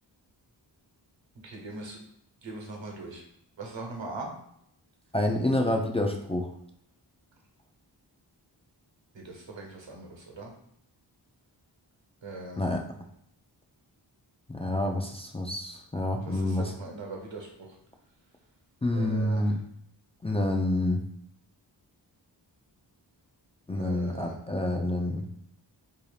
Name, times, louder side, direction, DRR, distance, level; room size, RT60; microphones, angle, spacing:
voice 1, 1.4-2.0 2.4-3.2 3.6-4.3 9.1-10.5 12.2-12.8 16.3-17.5 18.9-19.4 23.7-24.3, right 2 dB, 80° right, 1 dB, 1.0 m, -40 dB
voice 2, 5.1-6.5 12.6-12.9 14.5-16.7 18.8-19.6 20.2-21.0 23.7-25.3, left 1 dB, 15° left, 2 dB, 0.4 m, -28 dB
4.8 x 2.7 x 2.4 m, 0.73 s
wide cardioid pair, 75°, 45 cm